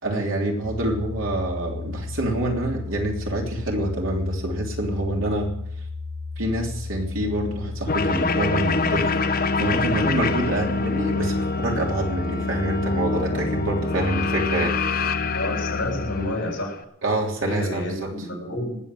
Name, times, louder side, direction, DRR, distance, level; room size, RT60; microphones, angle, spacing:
voice 1, 0.0-5.5 6.4-9.1 9.6-14.8 15.1-15.2 17.0-18.1, right 1 dB, 85° right, 0 dB, 3.4 m, -26 dB
sound 1, 0.6-16.3, left 3 dB, 65° right, 2.3 m, -34 dB
sound 2, 7.9-16.8, left 3 dB, 45° left, 0.9 m, -25 dB
voice 2, 15.3-16.8 17.4-18.8, left 1 dB, 70° left, 1 dB, 6.8 m, -29 dB
19.0 x 7.8 x 7.7 m, 0.74 s
head